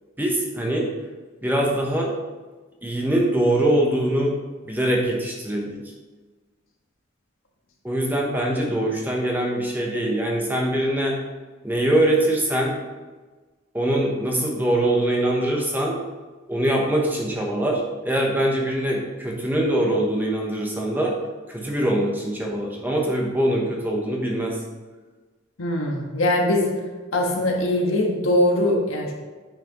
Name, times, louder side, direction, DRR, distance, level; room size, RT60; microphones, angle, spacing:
voice 1, 0.2-0.9 1.4-2.1 2.8-4.4 4.7-5.8 7.8-11.2 11.6-12.8 13.7-16.0 16.5-21.1 21.5-24.6, right 1 dB, 10° right, -1 dB, 0.9 m, -23 dB
voice 2, 25.6-26.7 27.1-29.1, left 1 dB, 80° left, 0 dB, 1.4 m, -21 dB
8.9 x 5.8 x 3.0 m, 1.3 s
head